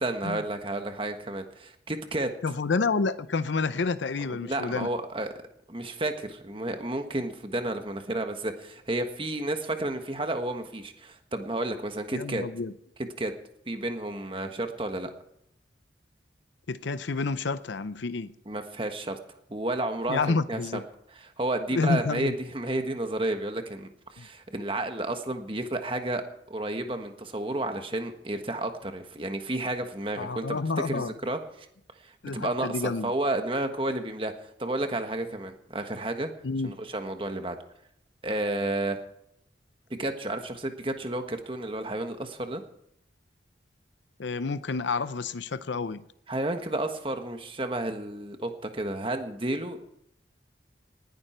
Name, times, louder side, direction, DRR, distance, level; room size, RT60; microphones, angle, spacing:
voice 1, 0.0-2.3 4.3-5.3 5.7-12.4 13.2-13.3 13.7-15.1 18.5-19.2 19.5-20.8 21.1-26.2 26.5-30.6 30.9-31.4 32.0-36.3 36.6-37.6 38.2-39.0 40.0-42.6 46.3-49.9, right 2 dB, 30° right, 1.4 m, -31 dB
voice 2, 2.4-4.9 12.1-12.7 16.7-18.3 20.1-20.8 21.7-22.4 24.2-24.3 30.2-31.1 32.2-33.1 36.4-36.7 44.2-46.0, left 4 dB, 80° left, 0.6 m, -29 dB
19.5 x 11.0 x 4.5 m
head